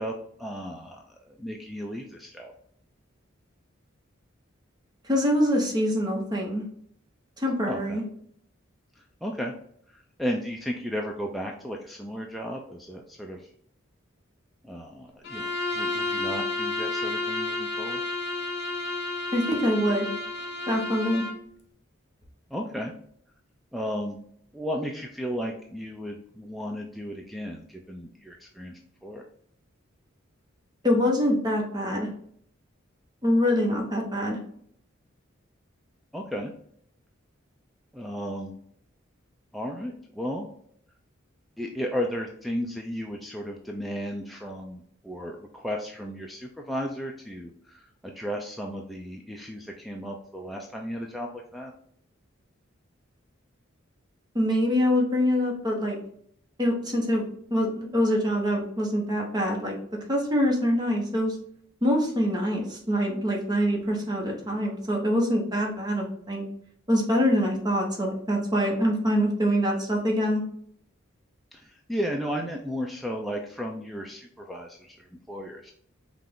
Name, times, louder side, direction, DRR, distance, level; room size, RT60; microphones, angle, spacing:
voice 1, 0.0-2.5 7.7-8.0 9.0-9.5 9.9-13.5 14.6-18.0 22.5-22.9 23.7-24.2 24.5-29.2 36.1-36.5 37.9-38.6 39.5-40.5 41.6-51.7 64.4-64.6 71.5-75.7, equal, ahead, 0 dB, 0.4 m, -34 dB
voice 2, 5.1-6.6 7.4-8.0 19.3-20.1 20.7-21.2 30.8-32.1 33.2-34.4 54.3-56.0 56.6-59.7 60.1-61.4 61.8-66.4 66.9-70.4, equal, 20° right, 0 dB, 1.0 m, -25 dB
Bowed string instrument, 15.2-21.4, left 2 dB, 55° left, 1.0 m, -31 dB
5.6 x 2.5 x 3.6 m, 0.65 s
head